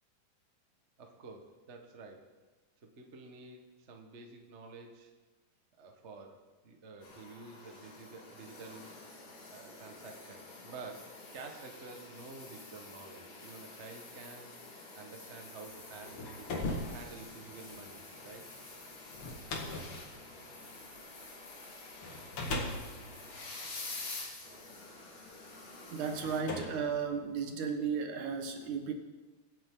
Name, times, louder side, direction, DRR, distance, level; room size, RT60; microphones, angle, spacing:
voice 1, 1.0-2.2 3.0-5.1 5.8-6.3 6.6-8.9 9.5-14.5 14.9-16.5 16.9-18.5, right 4 dB, 40° right, 2 dB, 0.9 m, -50 dB
sound 1, 7.0-26.4, left 3 dB, 75° left, 4.6 m, -48 dB
sound 2, 16.0-21.4 22.0-24.5 25.3-25.4 26.1-27.7, left 2 dB, 50° left, 2.4 m, -40 dB
voice 2, 25.9-28.9, right 6 dB, 75° right, 5 dB, 2.7 m, -34 dB
24.5 x 9.2 x 3.9 m, 1.3 s
omnidirectional pair, 3.7 m